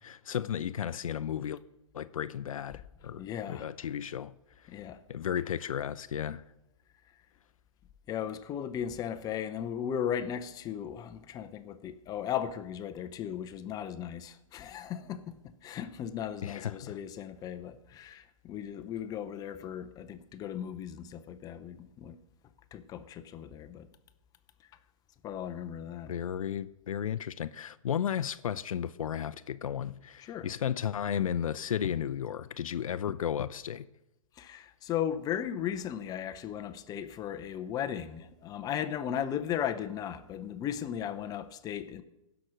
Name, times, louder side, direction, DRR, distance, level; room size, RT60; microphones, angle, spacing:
voice 1, 0.0-1.6 1.9-4.8 5.1-6.4 16.4-17.0 26.1-33.9, left 9 dB, 75° left, 0.5 m, -34 dB
voice 2, 3.2-3.7 4.7-5.0 8.1-15.4 15.6-22.2 22.7-23.9 25.2-26.1 30.2-30.5 34.3-42.0, left 9 dB, 20° left, 0.6 m, -36 dB
16.0 x 6.0 x 6.3 m
hypercardioid pair, 125°, 18 cm